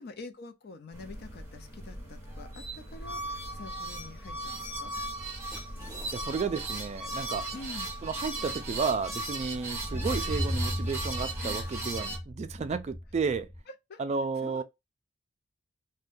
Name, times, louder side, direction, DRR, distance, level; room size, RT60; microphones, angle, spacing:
voice 1, 0.0-4.9 7.5-7.9 11.4-11.7 13.9-14.0 14.4-14.6, left 3 dB, 50° left, 0.5 m, -46 dB
sound 1, 0.9-12.2, right 2 dB, 10° right, 1.2 m, -37 dB
sound 2, 5.2-11.8, equal, 10° left, 1.1 m, -51 dB
voice 2, 6.1-7.5 8.0-13.5 14.0-14.6, right 5 dB, 35° right, 0.3 m, -32 dB
sound 3, 9.6-13.6, equal, 25° left, 1.0 m, -35 dB
2.6 x 2.2 x 3.5 m
head